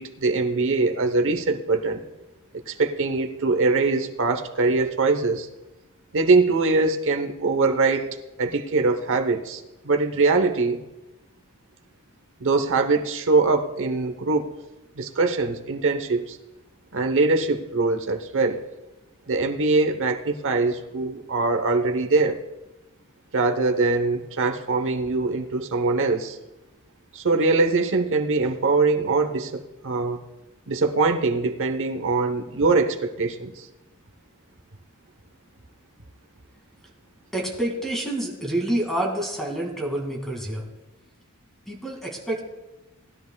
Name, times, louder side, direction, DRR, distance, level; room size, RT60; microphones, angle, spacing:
voice 1, 0.0-2.0 2.7-5.5 6.1-10.8 12.4-14.5 15.0-16.4 16.9-18.6 19.3-22.4 23.3-26.4 27.1-30.2 30.7-33.7, right 3 dB, 60° right, 6 dB, 1.0 m, -22 dB
voice 2, 37.3-40.6 41.7-42.4, right 1 dB, ahead, 0 dB, 2.2 m, -28 dB
19.0 x 10.5 x 2.3 m, 1.0 s
head